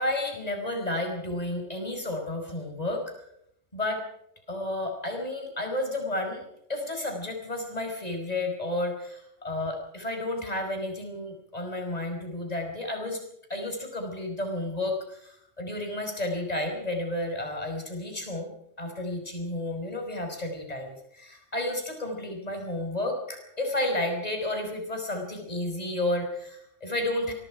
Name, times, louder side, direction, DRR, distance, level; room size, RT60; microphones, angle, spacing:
voice 1, 0.0-3.2 3.7-4.0 4.5-6.4 6.7-13.2 13.5-27.3, left 1 dB, 30° left, 3 dB, 5.2 m, -32 dB
25.0 x 23.5 x 5.0 m, 0.75 s
omnidirectional pair, 1.3 m